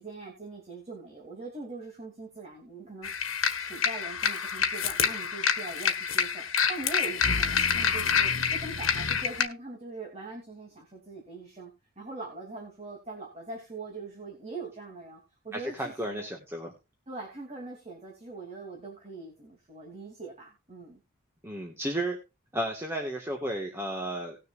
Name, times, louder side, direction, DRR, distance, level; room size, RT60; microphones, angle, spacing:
voice 1, 0.0-3.1 3.6-11.7 12.0-16.3 17.1-21.0, right 3 dB, 30° right, -1 dB, 2.8 m, -42 dB
sound 1, 3.0-9.5, left 7 dB, 85° left, 1.4 m, -27 dB
voice 2, 15.5-16.7 21.4-22.2 22.5-24.4, right 1 dB, 15° right, 1 dB, 1.7 m, -33 dB
19.5 x 6.7 x 2.5 m, 0.27 s
head